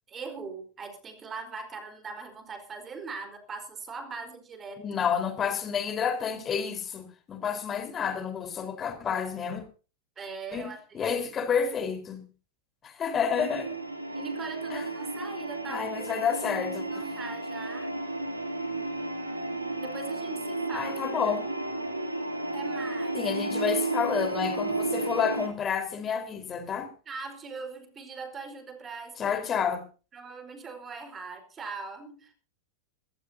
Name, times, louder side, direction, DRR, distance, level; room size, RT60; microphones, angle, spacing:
voice 1, 0.1-5.1 10.2-11.1 14.1-16.2 16.9-17.9 19.8-20.9 22.5-23.3 27.1-29.4 30.1-32.3, right 4 dB, 20° right, 4.5 m, -41 dB
voice 2, 4.8-9.6 10.5-12.2 12.8-13.8 14.7-14.8 15.7-17.0 20.7-21.5 23.1-26.9 29.2-29.8, left 7 dB, 25° left, 4.5 m, -30 dB
sound 1, 13.3-25.5, right 2 dB, 85° right, 2.9 m, -33 dB
23.5 x 15.5 x 2.8 m
figure-of-eight pair, 90°, 0 cm